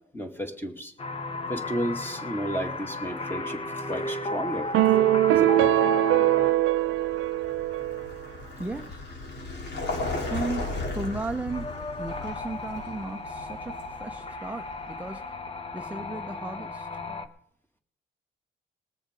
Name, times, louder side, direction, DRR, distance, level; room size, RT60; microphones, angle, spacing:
voice 1, 0.1-0.9 1.5-4.7 5.3-5.8, right 1 dB, 10° left, 4 dB, 2.2 m, -33 dB
sound 1, 1.0-7.2 11.5-17.3, left 2 dB, 30° left, 1.1 m, -34 dB
sound 2, 4.7-8.2, right 14 dB, 85° right, 0.5 m, -22 dB
Vehicle, 6.4-15.2, left 2 dB, 60° left, 3.3 m, -36 dB
voice 2, 8.6-9.0 10.3-10.7 10.9-11.7 12.0-15.4 15.7-16.9, right 2 dB, 5° right, 5 dB, 0.8 m, -35 dB
20.5 x 7.1 x 5.2 m, 0.63 s
cardioid pair, 90°, 20 cm